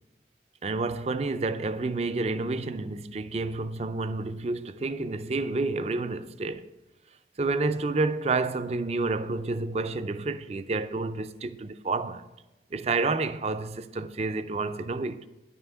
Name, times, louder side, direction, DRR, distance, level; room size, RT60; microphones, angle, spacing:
voice 1, 0.6-6.7 7.4-12.3 12.7-15.3, right 3 dB, 35° right, 0.4 m, -29 dB
10.0 x 5.6 x 8.0 m
head